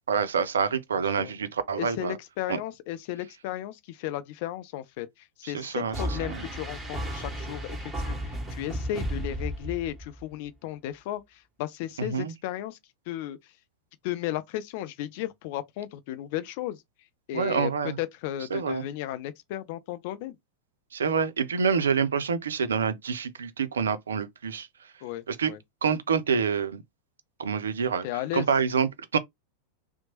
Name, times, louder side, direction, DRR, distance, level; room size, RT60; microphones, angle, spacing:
voice 1, 0.1-2.2 2.5-2.6 5.4-6.4 12.0-12.3 17.3-18.0 18.5-18.8 20.9-24.7 25.3-25.5 25.8-26.8 27.4-28.1 28.3-29.2, right 6 dB, 70° right, 0.4 m, -27 dB
voice 2, 0.9-1.3 1.8-12.8 13.1-13.4 14.0-16.8 17.3-17.7 18.0-20.4 25.0-25.6 28.0-28.5, left 13 dB, 50° left, 0.4 m, -35 dB
sound 1, 5.9-10.2, equal, 5° right, 1.4 m, -33 dB
2.8 x 2.0 x 2.8 m
figure-of-eight pair, 90°, 0 cm